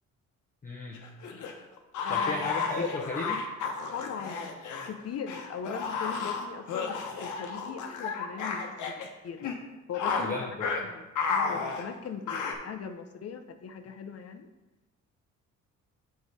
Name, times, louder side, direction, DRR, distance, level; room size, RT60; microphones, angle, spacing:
voice 1, 0.6-1.0 2.1-3.4 10.2-10.8, left 3 dB, 25° left, -2 dB, 0.9 m, -34 dB
sound 1, 0.9-4.9 5.3-9.1 9.4-9.6 9.9-10.3 10.6-10.8 11.2-12.5, left 5 dB, 80° left, 1.0 m, -32 dB
voice 2, 2.0-2.6 3.9-4.5 4.9-9.4 9.9-14.5, left 7 dB, 55° left, 8 dB, 0.7 m, -39 dB
7.0 x 4.8 x 4.1 m, 1.1 s
cardioid pair, 90°, 30 cm